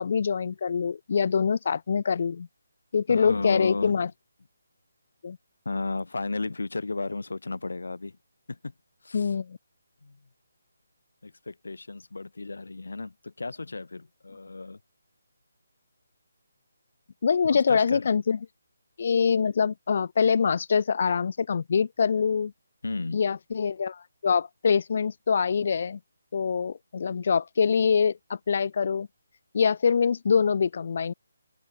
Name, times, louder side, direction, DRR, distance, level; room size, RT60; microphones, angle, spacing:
voice 1, 0.0-2.5 2.9-4.1 5.2-5.4 9.1-9.6 17.2-18.4 19.0-22.5 23.1-26.0 26.3-29.1 29.5-31.1, left 6 dB, 50° left, 0.4 m, -24 dB
voice 2, 3.1-4.1 5.6-8.2 8.5-8.7 9.0-9.3 10.0-10.2 11.2-14.8 17.5-18.1 22.8-23.2, left 3 dB, 80° left, 1.6 m, -34 dB
open air
figure-of-eight pair, 165°, 0 cm